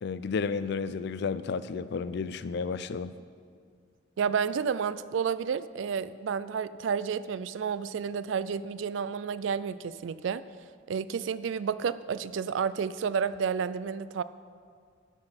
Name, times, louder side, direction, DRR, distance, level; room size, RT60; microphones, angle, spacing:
voice 1, 0.0-3.1, left 5 dB, 60° left, 14 dB, 0.4 m, -32 dB
voice 2, 4.2-10.4 10.9-14.2, right 6 dB, 70° right, 16 dB, 0.4 m, -31 dB
13.0 x 6.1 x 5.8 m, 2.1 s
head